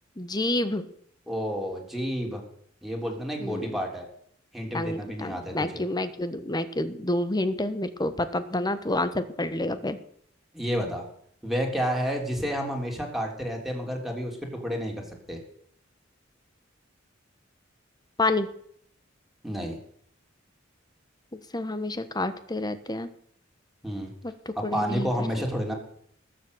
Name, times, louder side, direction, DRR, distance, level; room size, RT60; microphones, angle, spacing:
voice 1, 0.2-0.9 3.4-3.8 4.7-10.0 18.2-18.5 21.3-23.1 24.2-25.1, left 2 dB, 20° left, 12 dB, 1.2 m, -29 dB
voice 2, 1.3-2.4 2.8-4.0 4.5-5.8 10.5-11.0 11.4-14.4 14.6-15.4 19.4-19.8 23.8-24.1 24.5-25.7, equal, ahead, 1 dB, 3.5 m, -30 dB
19.0 x 7.6 x 8.1 m, 0.66 s
head